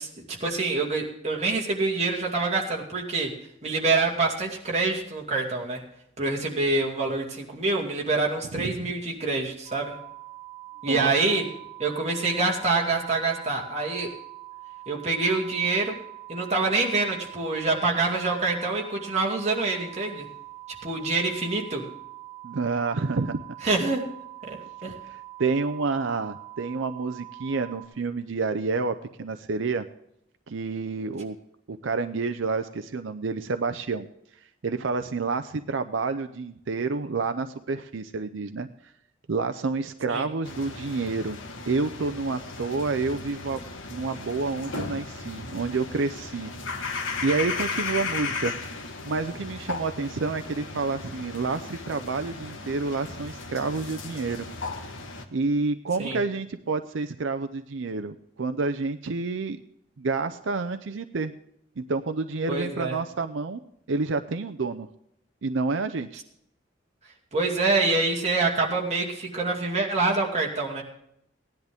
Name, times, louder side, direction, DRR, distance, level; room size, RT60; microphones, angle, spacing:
voice 1, 0.0-3.4 3.6-5.8 6.2-10.0 10.8-11.5 11.8-14.1 14.9-16.0 16.3-20.3 20.8-21.9 23.6-24.0 24.4-25.0 40.1-40.2 56.0-56.2 62.5-62.9 67.3-70.8, right 3 dB, 35° right, -1 dB, 2.5 m, -26 dB
voice 2, 8.5-8.9 10.9-11.1 22.4-23.4 25.1-29.8 30.5-31.4 31.7-34.1 34.6-38.7 39.3-41.4 41.7-46.5 47.2-48.5 49.0-54.5 54.7-54.9 55.3-59.6 60.0-61.3 61.8-63.6 63.9-64.9 65.4-66.2, right 4 dB, 80° right, 9 dB, 0.6 m, -29 dB
sound 1, 9.7-27.9, right 17 dB, 55° right, 3.0 m, -44 dB
sound 2, 40.4-55.2, left 4 dB, 80° left, 1.4 m, -36 dB
17.0 x 10.5 x 3.5 m, 0.76 s
head